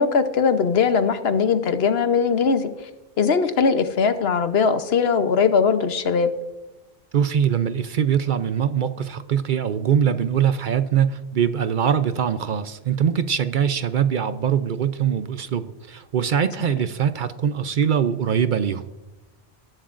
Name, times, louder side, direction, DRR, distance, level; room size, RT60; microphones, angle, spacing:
voice 1, 0.0-2.7 3.2-6.3, left 5 dB, 70° left, 10 dB, 1.1 m, -20 dB
voice 2, 7.1-18.8, right 8 dB, 55° right, 12 dB, 0.7 m, -22 dB
20.5 x 11.0 x 2.5 m, 1.1 s
omnidirectional pair, 1.1 m